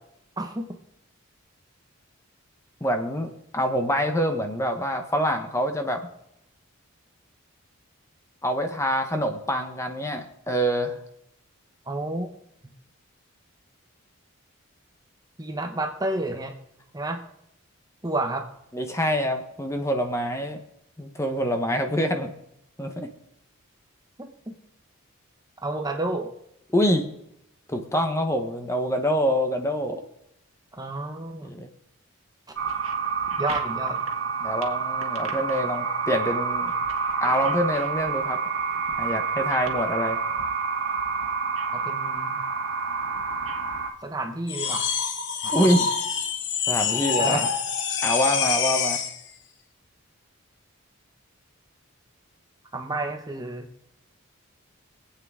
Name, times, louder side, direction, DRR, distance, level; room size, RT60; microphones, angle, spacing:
voice 1, 0.4-0.8 11.9-12.3 12.6-12.7 15.4-16.5 16.9-17.2 18.0-18.5 24.2-24.5 25.6-26.3 30.8-31.6 33.4-34.0 41.7-42.4 44.0-44.9 45.4-45.9 47.2-47.4 52.7-53.7, right 2 dB, 15° right, 4 dB, 0.9 m, -30 dB
voice 2, 2.8-6.0 8.4-11.0 18.7-20.6 21.0-22.3 22.8-23.1 26.7-27.1 27.7-30.0 31.5-31.7 34.4-36.7 37.2-38.4 39.0-40.2 45.5-46.0 46.7-47.5 48.0-49.0, equal, 15° left, 5 dB, 1.0 m, -25 dB
sound 1, 32.6-43.9, right 5 dB, 70° right, 1.6 m, -28 dB
sound 2, 44.5-49.2, left 6 dB, 55° left, 1.1 m, -26 dB
23.5 x 8.5 x 3.7 m, 0.79 s
head